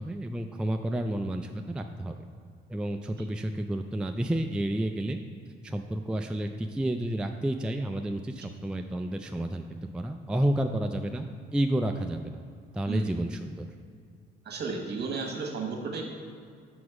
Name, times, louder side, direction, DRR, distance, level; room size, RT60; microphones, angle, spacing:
voice 1, 0.0-2.1 2.7-5.2 5.6-11.3 11.5-12.4 12.7-13.7, right 1 dB, 5° right, 5 dB, 0.3 m, -30 dB
voice 2, 14.4-16.0, right 4 dB, 55° right, 1 dB, 1.4 m, -33 dB
6.2 x 6.0 x 4.8 m, 2.2 s
cardioid pair, 90°, 20 cm